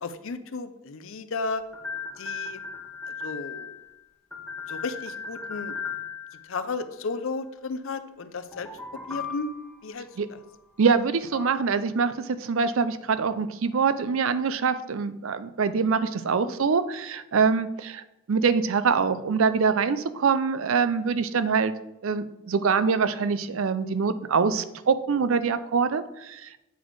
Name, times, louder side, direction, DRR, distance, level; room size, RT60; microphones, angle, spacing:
voice 1, 0.0-1.6 2.2-2.6 3.2-3.8 4.7-5.7 6.5-9.5 9.8-10.4 16.4-16.5, left 3 dB, 60° left, 10 dB, 0.5 m, -34 dB
sound 1, 1.7-3.9 4.3-6.7 8.5-9.9 11.3-11.6, left 5 dB, 5° left, 0.8 m, -37 dB
voice 2, 10.8-21.7 22.0-26.6, right 5 dB, 60° right, 13 dB, 0.4 m, -24 dB
8.2 x 4.1 x 4.7 m, 0.92 s
head